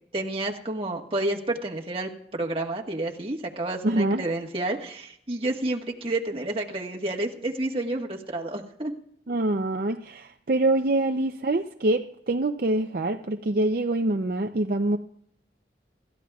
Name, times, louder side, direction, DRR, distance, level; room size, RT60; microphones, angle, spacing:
voice 1, 0.1-8.9, right 2 dB, 30° right, 1.5 m, -30 dB
voice 2, 3.8-4.2 9.3-15.0, right 2 dB, 55° right, 0.6 m, -25 dB
26.5 x 13.5 x 2.4 m
head